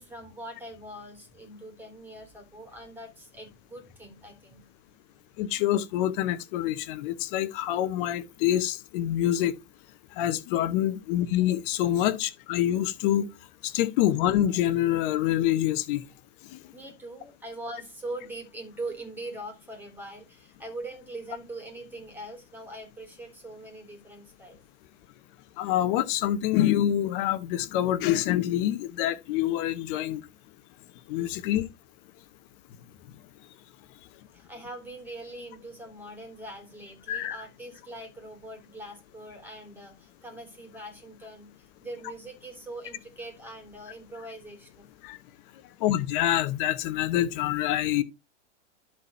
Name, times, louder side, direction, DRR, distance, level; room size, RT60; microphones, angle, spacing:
voice 1, 0.0-4.6 16.7-24.6 34.3-44.9, right 1 dB, 5° right, 3.5 m, -42 dB
voice 2, 5.4-9.5 10.2-13.3 13.6-16.0 25.6-30.2 31.1-31.6 37.1-37.4 45.0-45.2 45.8-48.0, left 12 dB, 45° left, 1.0 m, -26 dB
12.0 x 4.3 x 4.3 m
hypercardioid pair, 125°, 37 cm